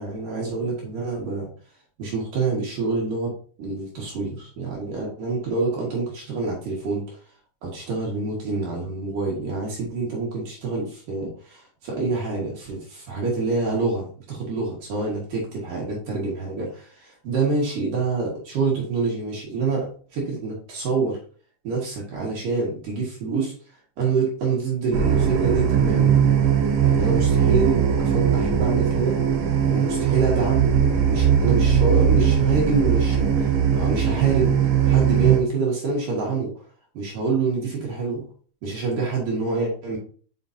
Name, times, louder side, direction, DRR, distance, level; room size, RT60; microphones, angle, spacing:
voice 1, 0.0-1.5 2.0-3.3 3.6-7.2 7.6-21.2 21.6-23.5 24.0-26.3 26.8-29.2 29.7-33.5 33.7-34.6 34.8-36.5 36.9-38.3 38.6-40.0, right 4 dB, 55° right, -3 dB, 2.7 m, -26 dB
sound 1, 24.9-35.4, right 8 dB, 75° right, 3.3 m, -20 dB
7.1 x 5.7 x 2.7 m, 0.43 s
omnidirectional pair, 5.6 m